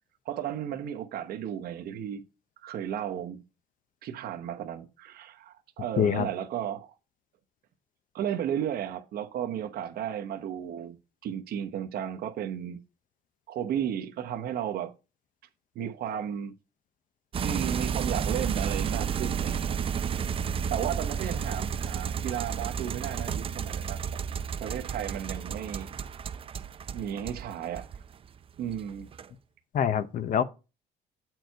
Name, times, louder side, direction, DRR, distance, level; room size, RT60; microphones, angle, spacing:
voice 1, 0.3-2.2 2.6-3.4 4.0-7.0 8.1-12.8 13.5-14.9 15.7-16.5 17.4-19.8 20.7-24.0 24.6-25.9 26.9-27.9 28.6-29.1, right 9 dB, 65° right, 0.9 m, -34 dB
voice 2, 6.0-6.3 29.7-30.4, left 8 dB, 50° left, 0.7 m, -25 dB
sound 1, 17.3-28.3 28.6-29.3, right 7 dB, 35° right, 0.4 m, -32 dB
7.8 x 4.6 x 4.5 m
cardioid pair, 110°, 17 cm